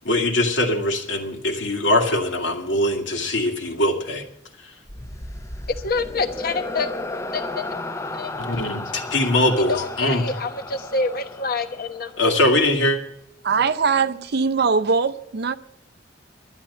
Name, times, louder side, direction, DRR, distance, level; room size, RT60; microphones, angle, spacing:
voice 1, 0.0-4.3 8.4-10.2 12.2-13.0, left 1 dB, 75° left, 2.2 m, -21 dB
sound 1, 4.9-12.2, left 2 dB, 15° left, 0.6 m, -34 dB
voice 2, 5.7-6.9 7.3-7.7 8.1-8.3 9.6-12.6, left 3 dB, 55° left, 1.1 m, -27 dB
voice 3, 13.4-15.5, right 5 dB, 60° right, 0.6 m, -21 dB
11.5 x 11.0 x 8.1 m
head